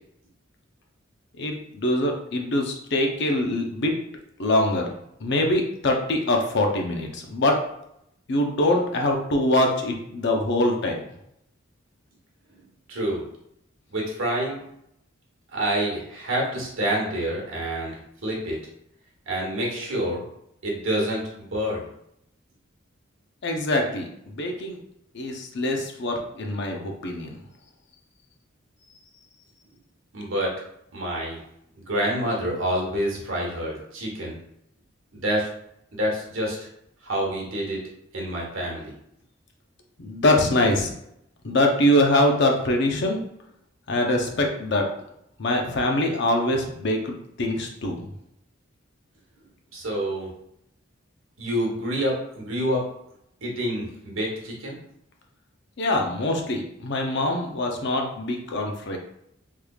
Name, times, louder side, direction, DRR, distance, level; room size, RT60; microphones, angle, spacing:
voice 1, 1.4-3.9 4.4-4.9 5.2-7.6 8.3-11.0 23.4-24.8 25.1-27.3 40.0-40.9 41.4-43.2 43.9-44.8 45.4-48.0 55.8-59.0, left 1 dB, 60° left, 2 dB, 0.6 m, -23 dB
voice 2, 12.9-13.2 13.9-14.6 15.5-18.6 19.3-20.2 20.6-21.2 21.5-21.9 30.1-30.6 30.9-31.4 31.9-34.4 35.1-35.5 35.9-36.7 37.0-37.8 38.1-38.9 49.7-50.3 51.4-52.8 53.4-54.8, right 1 dB, 80° right, -2 dB, 1.2 m, -27 dB
3.6 x 3.2 x 2.3 m, 0.76 s
head